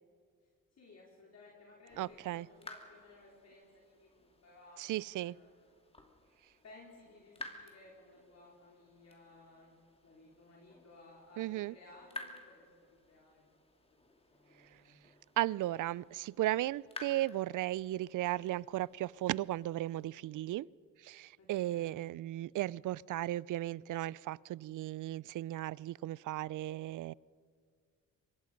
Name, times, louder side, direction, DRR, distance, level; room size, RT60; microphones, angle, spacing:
voice 1, 0.7-5.7 6.6-9.7 10.0-13.5 13.9-14.0 14.3-15.0 21.4-21.9, left 2 dB, 50° left, 4.5 m, -59 dB
sound 1, 1.9-20.1, left 2 dB, 20° left, 2.7 m, -54 dB
voice 2, 2.0-2.5 4.8-5.4 11.4-11.7 15.4-20.7 21.0-27.1, right 15 dB, 65° right, 0.5 m, -36 dB
25.0 x 22.5 x 5.3 m
cardioid pair, 100°, 33 cm